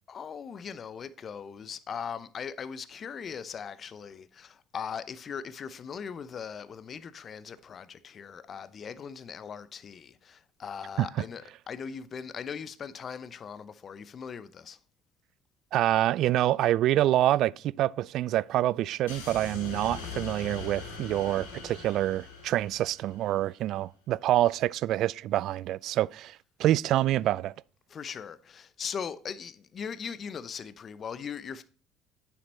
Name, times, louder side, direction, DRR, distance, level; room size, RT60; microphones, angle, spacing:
voice 1, 0.1-14.8 27.9-31.6, left 7 dB, 45° left, 0.7 m, -39 dB
voice 2, 15.7-27.5, right 13 dB, 60° right, 0.3 m, -26 dB
sound 1, 19.1-23.4, left 5 dB, 85° left, 2.7 m, -42 dB
9.3 x 7.1 x 4.3 m
hypercardioid pair, 65°, 0 cm